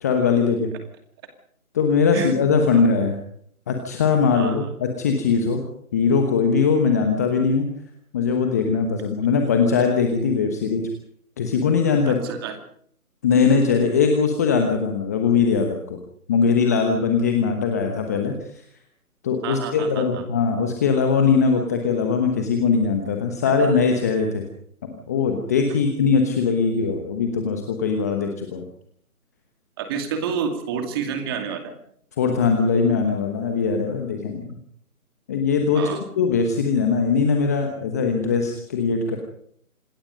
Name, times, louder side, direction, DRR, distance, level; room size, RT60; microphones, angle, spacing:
voice 1, 0.0-0.7 1.7-3.2 3.7-5.6 5.9-7.7 8.1-10.8 11.4-12.2 13.2-16.0 16.3-18.6 19.2-24.4 24.8-28.6 32.2-34.6 35.3-39.2, left 5 dB, 10° left, 4 dB, 1.1 m, -21 dB
voice 2, 4.3-4.7 12.1-12.6 19.4-20.2 29.8-31.7 35.7-36.0, right 7 dB, 15° right, 6 dB, 2.4 m, -29 dB
26.5 x 19.5 x 5.3 m, 0.64 s
figure-of-eight pair, 155°, 44 cm